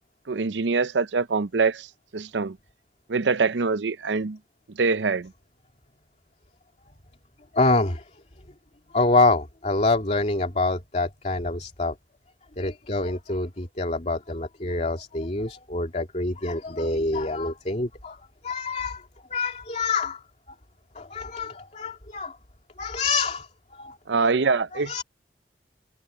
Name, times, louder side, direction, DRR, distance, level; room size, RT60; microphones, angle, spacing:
voice 1, 0.3-1.9 2.1-2.6 3.1-4.4 4.8-5.3 24.1-25.0, right 4 dB, 85° right, 0.7 m, -24 dB
voice 2, 7.5-8.0 8.9-12.0 12.6-20.6 20.9-22.4 22.8-24.0 24.7-25.0, left 3 dB, 40° left, 2.6 m, -26 dB
head